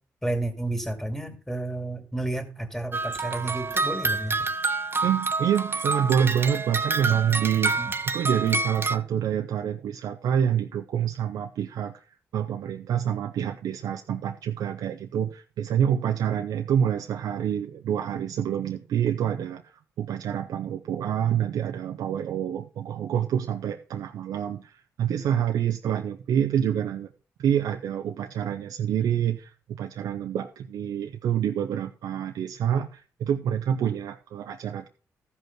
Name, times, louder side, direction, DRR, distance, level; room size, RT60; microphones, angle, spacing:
voice 1, 0.2-4.4 7.8-7.9, right 2 dB, 5° left, 6 dB, 2.6 m, -31 dB
sound 1, 2.9-9.0, right 3 dB, 35° right, 0.8 m, -28 dB
voice 2, 5.0-12.0 12.3-27.1 27.4-34.9, right 9 dB, 80° right, 6 dB, 0.6 m, -27 dB
13.5 x 5.5 x 6.0 m, 0.38 s
cardioid pair, 60°, 6 cm